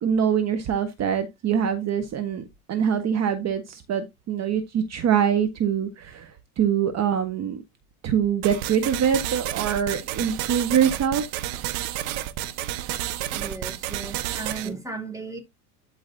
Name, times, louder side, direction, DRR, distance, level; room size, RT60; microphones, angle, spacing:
voice 1, 0.0-7.6 8.0-11.3, right 8 dB, 35° right, 1.4 m, -24 dB
sound 1, 8.4-14.7, right 13 dB, 60° right, 1.4 m, -31 dB
voice 2, 13.3-15.4, right 3 dB, 5° right, 2.5 m, -35 dB
12.0 x 5.5 x 2.7 m
hypercardioid pair, 100°, 44 cm